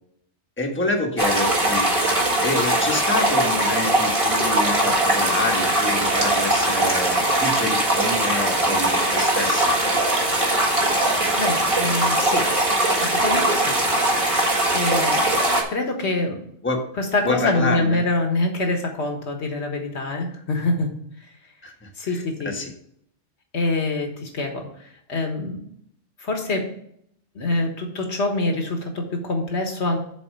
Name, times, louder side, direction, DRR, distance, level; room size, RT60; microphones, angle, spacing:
voice 1, 0.6-2.2 2.4-9.8 16.6-16.9 17.2-18.0 21.6-22.7, left 2 dB, 10° left, 1 dB, 1.1 m, -27 dB
sound 1, 1.2-15.6, right 1 dB, 30° right, 1.5 m, -21 dB
voice 2, 11.4-12.5 13.0-13.8 14.7-15.3 15.7-16.4 17.0-20.9 22.0-22.5 23.5-25.6 26.2-26.7 27.3-30.0, left 2 dB, 70° left, 3 dB, 1.6 m, -25 dB
7.0 x 4.2 x 6.5 m, 0.68 s
omnidirectional pair, 1.2 m